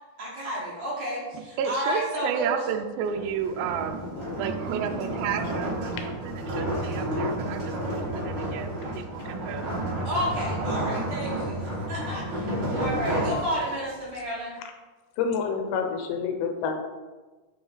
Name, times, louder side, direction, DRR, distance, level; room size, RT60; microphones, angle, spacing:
voice 1, 0.2-2.6 10.0-14.6, equal, 55° right, -7 dB, 2.3 m, -31 dB
voice 2, 1.3-4.0 4.3-9.7, right 7 dB, 80° right, 6 dB, 2.2 m, -32 dB
sound 1, 3.1-14.0, right 1 dB, 35° right, 2.2 m, -31 dB
voice 3, 4.0-4.4 15.2-16.8, left 6 dB, 85° left, 5 dB, 2.7 m, -28 dB
8.7 x 3.1 x 4.0 m, 1.3 s
omnidirectional pair, 4.5 m